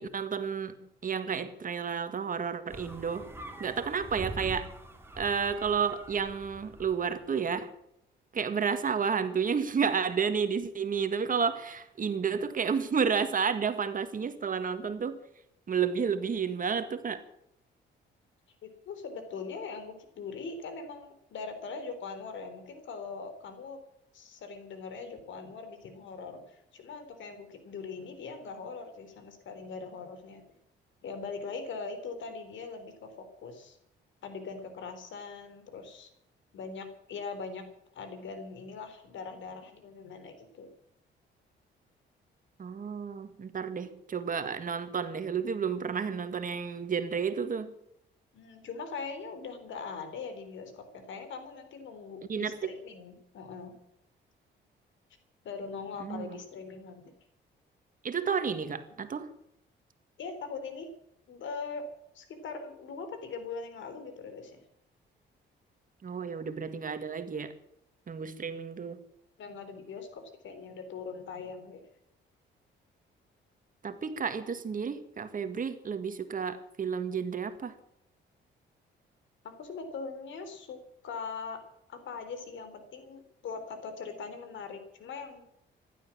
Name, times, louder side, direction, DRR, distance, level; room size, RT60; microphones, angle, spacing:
voice 1, 0.0-3.3 3.6-4.7 5.2-7.7 8.3-15.2 15.7-17.2 42.6-47.7 52.3-52.7 56.0-56.4 58.0-59.3 66.0-67.5 68.1-69.0 73.8-77.7, right 6 dB, 45° right, 1.9 m, -31 dB
sound 1, 2.7-7.2, right 1 dB, 10° right, 3.2 m, -44 dB
voice 2, 18.6-23.8 24.1-30.4 31.0-33.8 34.2-36.1 36.5-37.6 37.9-40.7 48.3-53.7 55.4-57.1 60.2-60.9 61.3-61.9 62.1-64.6 69.4-71.8 79.4-81.6 81.9-85.5, left 4 dB, 70° left, 3.8 m, -41 dB
15.5 x 12.0 x 7.4 m
cardioid pair, 90°, 20 cm